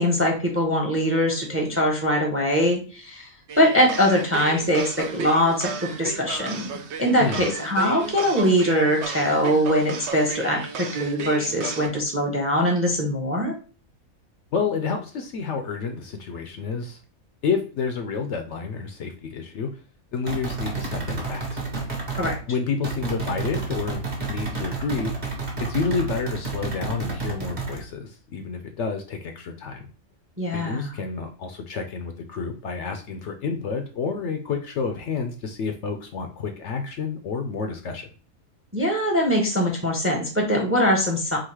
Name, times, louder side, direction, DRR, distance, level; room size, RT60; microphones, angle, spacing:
voice 1, 0.0-3.3 3.6-6.7 7.0-13.5 22.2-22.4 30.4-31.0 38.7-41.4, equal, 10° right, 1 dB, 0.7 m, -22 dB
sound 1, 3.5-11.9, right 5 dB, 60° right, 0.9 m, -34 dB
voice 2, 14.5-17.0 17.4-19.7 20.1-21.5 22.5-24.0 24.3-25.2 25.6-29.9 30.5-38.1, left 5 dB, 65° left, 6 dB, 0.8 m, -29 dB
sound 2, 20.3-22.4 22.8-27.8, right 3 dB, 35° right, 1.1 m, -30 dB
3.9 x 2.5 x 4.5 m, 0.38 s
omnidirectional pair, 1.4 m